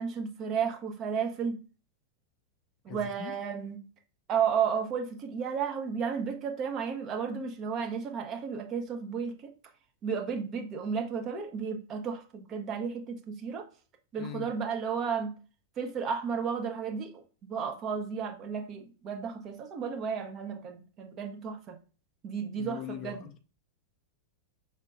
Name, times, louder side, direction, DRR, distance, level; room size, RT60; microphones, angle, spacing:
voice 1, 0.0-1.6 2.8-3.8 4.3-9.5 10.0-13.7 14.1-15.3 15.8-21.8 22.2-23.3, right 6 dB, 30° right, 0.8 m, -33 dB
voice 2, 2.9-3.3 14.2-14.5 22.6-23.4, left 10 dB, 35° left, 0.5 m, -41 dB
5.4 x 3.7 x 2.4 m
figure-of-eight pair, 90°, 0 cm